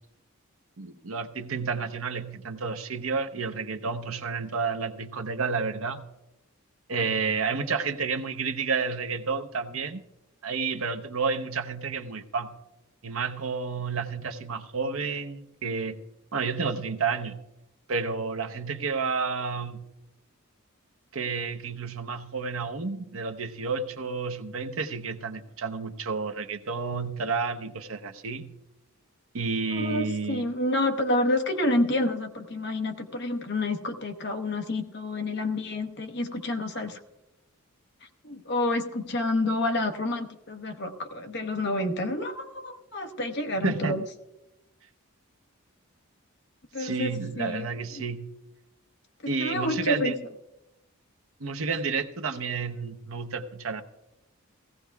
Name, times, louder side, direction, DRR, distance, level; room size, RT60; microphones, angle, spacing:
voice 1, 0.8-6.0 6.9-10.0 10.4-12.5 13.0-16.0 16.3-17.4 17.9-19.9 21.1-28.5 29.3-30.5 43.6-43.9 46.8-48.3 49.3-50.1 51.4-53.8, right 4 dB, 70° right, 7 dB, 0.8 m, -30 dB
voice 2, 29.7-37.0 38.2-44.0 46.7-47.7 49.2-50.1, left 1 dB, 50° left, 6 dB, 1.0 m, -29 dB
16.5 x 16.0 x 2.3 m, 0.93 s
head